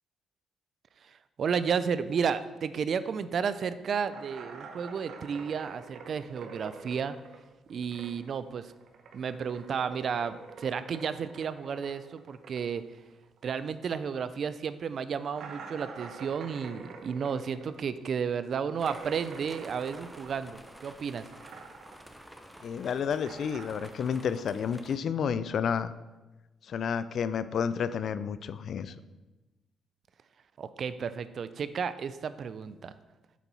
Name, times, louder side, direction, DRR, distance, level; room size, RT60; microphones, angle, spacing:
voice 1, 1.4-7.1 7.7-8.6 9.1-12.8 13.4-21.2 30.6-32.9, right 6 dB, 55° right, 13 dB, 0.4 m, -32 dB
sound 1, 4.1-8.4 8.6-13.7 14.0-14.1 14.5-14.6 15.3-20.9 21.2-22.1 22.4-23.9, right 4 dB, 70° right, 0.8 m, -46 dB
sound 2, 18.8-25.0, equal, 5° right, 0.6 m, -50 dB
voice 2, 22.6-25.9 26.6-28.9, left 7 dB, 60° left, 14 dB, 0.3 m, -30 dB
7.0 x 4.5 x 4.0 m, 1.1 s
cardioid pair, 90°, 0 cm